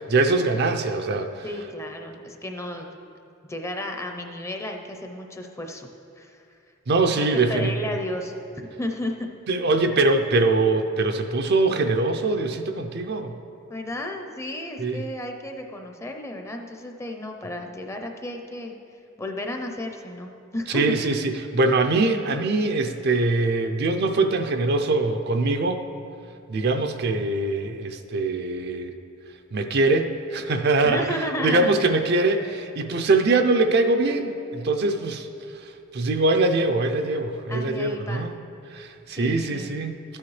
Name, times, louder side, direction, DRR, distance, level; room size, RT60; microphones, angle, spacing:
voice 1, 0.1-1.5 6.9-7.7 9.5-13.4 14.8-15.0 20.7-25.9 26.5-28.9 29.5-35.3 35.6-38.4 38.7-40.0, right 3 dB, 50° right, 6 dB, 0.5 m, -23 dB
voice 2, 1.4-3.0 3.5-5.9 6.2-6.4 7.2-9.3 13.7-18.7 19.2-20.9 30.8-31.8 37.5-38.3 39.1-39.7, left 1 dB, 15° left, 3 dB, 0.6 m, -33 dB
13.0 x 8.6 x 3.2 m, 2.6 s
head